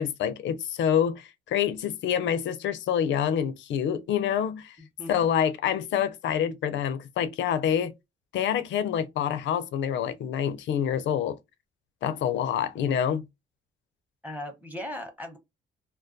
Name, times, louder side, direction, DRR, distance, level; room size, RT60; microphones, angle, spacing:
voice 1, 0.0-4.8 5.1-7.9 8.3-11.4 12.0-13.2, left 9 dB, 70° left, 0.4 m, -27 dB
voice 2, 4.8-5.2 14.2-15.4, left 1 dB, 10° right, 0.8 m, -38 dB
2.2 x 2.2 x 2.5 m
cardioid pair, 90°, 20 cm